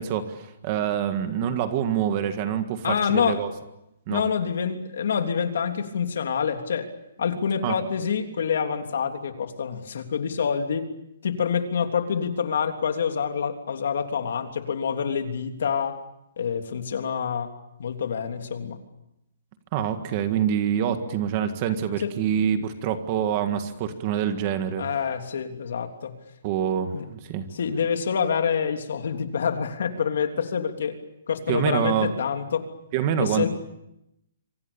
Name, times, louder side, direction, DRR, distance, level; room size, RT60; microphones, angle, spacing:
voice 1, 0.0-3.5 4.1-4.2 7.6-7.8 19.7-24.8 26.4-27.5 31.5-32.1 32.9-33.5, right 9 dB, 25° right, 8 dB, 1.8 m, -26 dB
voice 2, 2.8-3.4 4.1-6.9 7.2-10.9 11.2-16.0 16.4-17.5 17.8-18.8 22.0-22.1 24.8-26.2 26.9-27.0 27.5-31.0 31.3-32.7 33.2-33.5, left 7 dB, 60° left, 5 dB, 3.3 m, -26 dB
28.0 x 25.0 x 7.1 m, 0.85 s
hypercardioid pair, 175°, 0 cm